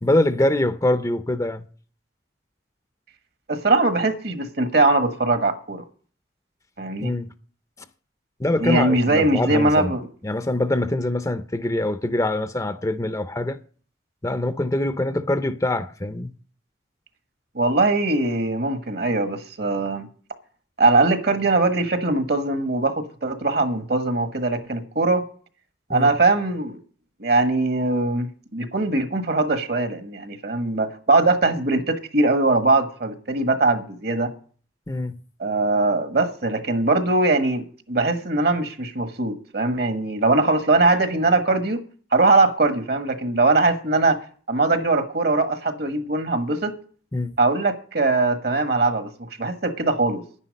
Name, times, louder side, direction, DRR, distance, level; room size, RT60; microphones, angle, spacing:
voice 1, 0.0-1.7 7.0-7.3 8.4-9.9 10.2-13.6 14.2-16.3 25.9-26.1 34.9-35.2 47.1-47.4, left 1 dB, 20° left, 0.6 m, -24 dB
voice 2, 3.5-5.8 6.8-7.1 8.6-10.1 17.5-20.1 20.8-25.3 25.9-26.8 27.2-34.3 35.4-41.8 42.1-44.2 44.5-46.7 47.4-50.2, right 2 dB, 60° right, 1.4 m, -21 dB
10.5 x 9.9 x 5.2 m
head